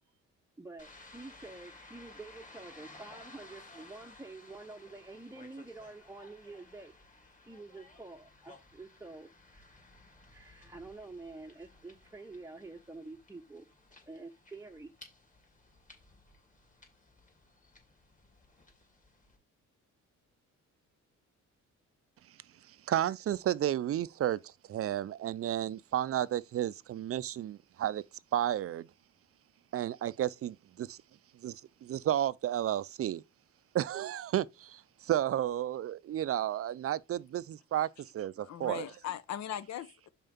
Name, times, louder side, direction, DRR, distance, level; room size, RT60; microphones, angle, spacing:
voice 1, 0.6-9.8 10.3-13.7 14.1-14.9, right 3 dB, 10° right, 0.8 m, -48 dB
sound 1, 0.8-19.4, left 2 dB, 25° left, 2.7 m, -57 dB
voice 2, 22.9-28.0 28.3-28.9 29.7-31.0 31.4-33.2 33.7-37.9 38.1-38.9, right 11 dB, 50° right, 0.5 m, -32 dB
voice 3, 38.4-40.1, left 11 dB, 60° left, 0.8 m, -39 dB
5.6 x 4.4 x 5.3 m
cardioid pair, 90°, 30 cm